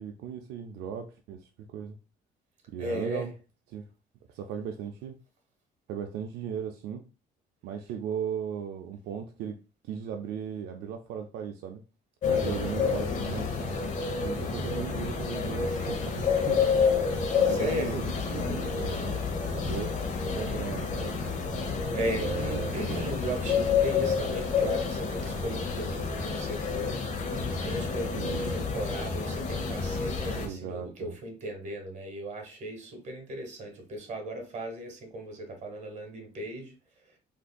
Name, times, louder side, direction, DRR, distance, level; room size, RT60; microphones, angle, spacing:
voice 1, 0.0-2.0 2.7-3.3 3.7-3.9 4.3-5.2 5.9-7.0 7.6-11.8 12.3-13.5 14.2-16.7 17.3-19.2 19.5-19.9 20.3-21.2 22.2-23.1 23.5-23.6 28.1-28.6 30.4-31.1, right 8 dB, 80° right, 4 dB, 0.4 m, -37 dB
voice 2, 2.8-3.3 12.3-12.7 17.5-18.0 21.9-27.0 27.5-36.7, right 1 dB, 45° right, 3 dB, 1.2 m, -36 dB
sound 1, 12.2-30.5, left 5 dB, 50° left, 0.7 m, -29 dB
3.6 x 2.6 x 2.2 m, 0.32 s
cardioid pair, 110°, 17 cm